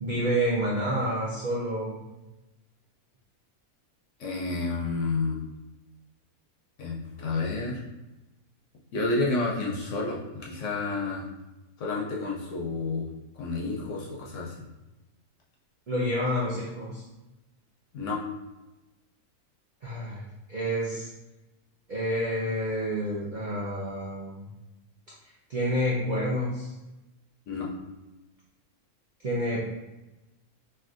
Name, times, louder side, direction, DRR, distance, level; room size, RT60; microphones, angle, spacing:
voice 1, 0.0-2.0 15.9-17.0 19.8-20.2 20.5-21.1 21.9-24.4 25.5-26.7 29.2-29.6, equal, 65° right, -6 dB, 0.4 m, -28 dB
voice 2, 4.2-5.4 6.8-7.8 8.9-11.3 11.8-13.1 13.4-14.5 17.9-18.2 27.5-27.7, left 3 dB, 65° left, -3 dB, 0.8 m, -30 dB
3.3 x 2.6 x 2.4 m, 1.0 s
omnidirectional pair, 1.6 m